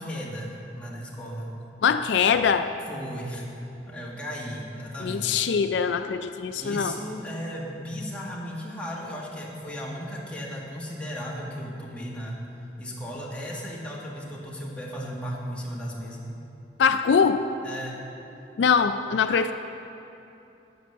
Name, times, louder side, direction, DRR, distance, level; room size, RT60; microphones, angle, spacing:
voice 1, 0.0-1.6 2.9-3.5 3.9-5.4 6.6-12.4 12.8-16.2 17.6-18.0, equal, 5° left, -4 dB, 1.5 m, -35 dB
voice 2, 1.8-2.7 5.0-6.9 16.8-17.4 18.6-19.5, left 6 dB, 75° left, 9 dB, 0.4 m, -22 dB
9.4 x 7.8 x 6.5 m, 2.9 s
head